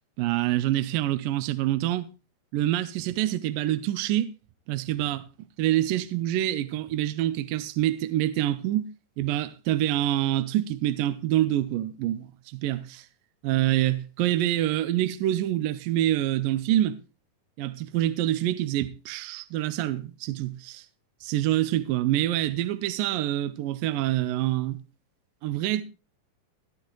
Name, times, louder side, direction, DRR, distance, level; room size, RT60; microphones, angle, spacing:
voice 1, 0.2-2.1 2.5-4.3 4.7-5.2 5.6-8.9 9.2-12.3 12.6-12.8 13.4-17.0 17.6-20.9 21.2-24.8 25.4-25.8, right 13 dB, 75° right, 2.2 m, -26 dB
17.0 x 12.0 x 3.1 m
omnidirectional pair, 4.3 m